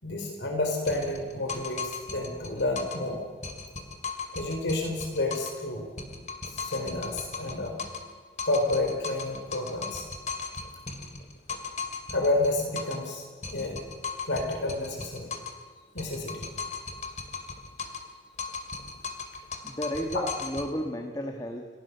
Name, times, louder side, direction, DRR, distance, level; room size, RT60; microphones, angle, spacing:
voice 1, 0.0-3.2 4.3-5.9 6.5-7.9 8.4-10.1 12.1-13.3 13.5-13.8 14.2-15.3 15.9-16.5, left 2 dB, 80° left, 3 dB, 4.3 m, -30 dB
sound 1, 0.9-3.1 3.4-5.6 6.0-8.1 8.4-13.1 13.4-15.6 16.0-18.1 18.4-20.7, left 4 dB, 40° left, 2.4 m, -37 dB
voice 2, 19.6-21.7, equal, 20° left, 3 dB, 1.6 m, -33 dB
29.0 x 17.5 x 6.8 m, 1.6 s
head